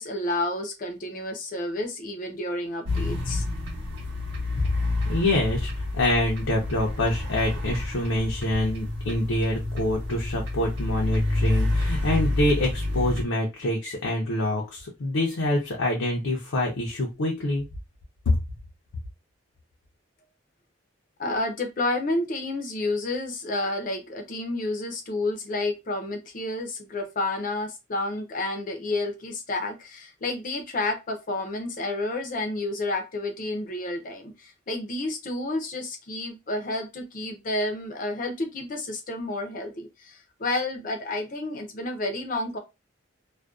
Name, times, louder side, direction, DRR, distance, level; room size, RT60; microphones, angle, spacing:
voice 1, 0.0-3.4 21.2-42.6, left 2 dB, 40° left, 5 dB, 0.5 m, -30 dB
sound 1, 2.8-13.2, left 2 dB, 55° right, 0.8 m, -28 dB
voice 2, 5.1-17.6 18.3-18.4, left 1 dB, 80° left, -1 dB, 0.6 m, -26 dB
2.5 x 2.2 x 2.3 m, 0.25 s
head